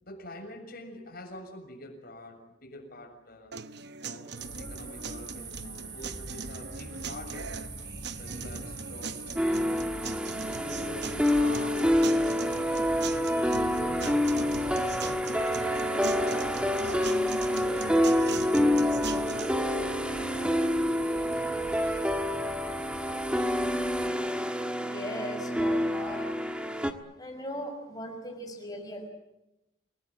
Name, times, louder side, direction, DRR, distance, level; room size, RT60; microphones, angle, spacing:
voice 1, 0.0-3.5 4.0-7.5 8.2-13.0 13.7-17.0 17.5-20.4 21.0-22.0 26.0-26.3, left 1 dB, 45° left, 3 dB, 7.1 m, -47 dB
sound 1, 3.5-19.5, right 4 dB, 55° right, 0.9 m, -39 dB
sound 2, 4.4-24.1, right 3 dB, 25° right, 3.7 m, -44 dB
sound 3, 9.4-26.9, left 1 dB, 5° right, 1.6 m, -27 dB
voice 2, 24.8-26.2 27.2-29.1, equal, 20° left, 3 dB, 5.9 m, -38 dB
28.5 x 19.0 x 9.0 m, 0.89 s
head